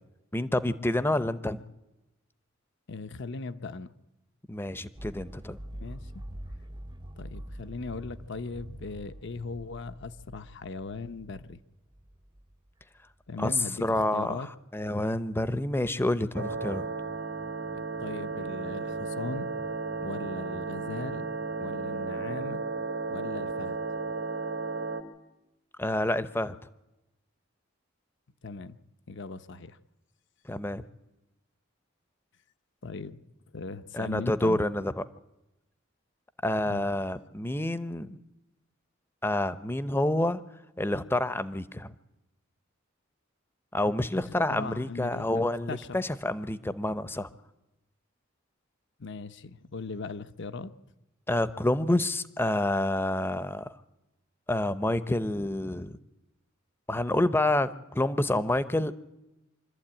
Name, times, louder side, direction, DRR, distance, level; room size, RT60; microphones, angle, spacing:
voice 1, 0.3-1.6 4.5-5.6 13.4-13.5 13.8-14.5 14.7-16.9 25.8-26.5 30.5-30.8 33.9-34.9 36.4-38.2 39.2-40.4 40.8-41.9 43.7-47.3 51.3-53.7 54.5-56.0 56.9-58.9, left 1 dB, 10° left, 14 dB, 0.7 m, -28 dB
voice 2, 2.9-3.9 5.7-6.1 7.2-11.6 13.3-14.5 17.7-19.5 20.0-21.3 21.6-22.6 23.1-23.8 28.4-28.8 29.1-29.8 32.8-33.2 33.5-34.6 36.6-36.9 44.2-46.0 49.0-50.7, left 3 dB, 60° left, 11 dB, 0.8 m, -39 dB
sound 1, 5.0-13.1, right 1 dB, 20° right, 0.7 m, -45 dB
sound 2, 16.3-25.0, right 4 dB, 85° right, 2.3 m, -34 dB
25.0 x 12.5 x 8.9 m, 0.98 s
head